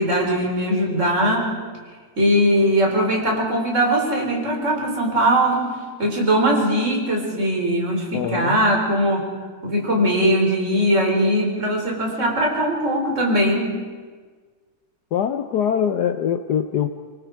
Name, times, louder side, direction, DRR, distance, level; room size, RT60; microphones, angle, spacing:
voice 1, 0.0-1.5 2.2-5.7 6.0-9.3 9.6-13.8, equal, 35° right, 0 dB, 4.4 m, -20 dB
voice 2, 8.1-8.6 15.1-16.9, left 8 dB, 65° left, 7 dB, 1.3 m, -23 dB
25.0 x 24.5 x 4.7 m, 1.5 s
omnidirectional pair, 2.1 m